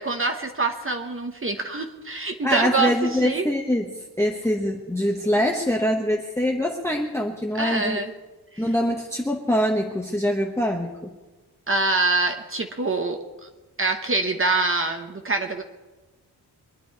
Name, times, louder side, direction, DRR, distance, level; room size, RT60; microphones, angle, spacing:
voice 1, 0.0-3.5 7.5-8.1 8.5-8.6 11.7-13.5 13.8-15.6, right 3 dB, 30° right, 5 dB, 1.0 m, -25 dB
voice 2, 2.4-8.0 8.6-11.1, equal, 5° left, 0 dB, 1.0 m, -24 dB
24.0 x 10.0 x 4.6 m, 1.2 s
wide cardioid pair, 135°, 39 cm